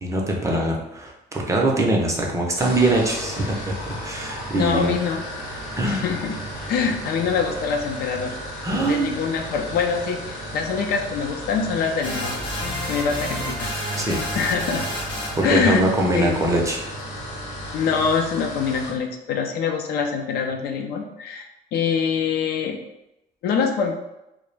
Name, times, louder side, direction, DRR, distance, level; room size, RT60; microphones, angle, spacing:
voice 1, 0.0-4.9 5.8-6.1 8.6-9.1 14.0-14.2 15.4-16.8, right 2 dB, 20° right, -1 dB, 0.5 m, -22 dB
sound 1, 2.5-19.0, left 1 dB, 85° left, 0.8 m, -35 dB
sound 2, 3.1-18.2, right 3 dB, 70° right, 0.5 m, -40 dB
voice 2, 4.5-5.2 5.8-6.4 6.7-8.3 8.8-12.4 12.9-14.1 14.3-14.9 15.4-15.8 16.1-16.4 17.7-22.8 23.4-23.9, left 6 dB, 70° left, 3 dB, 0.4 m, -24 dB
sound 3, 12.0-15.5, equal, 30° left, 0.6 m, -30 dB
2.2 x 2.0 x 3.1 m, 0.90 s
cardioid pair, 110°, 17 cm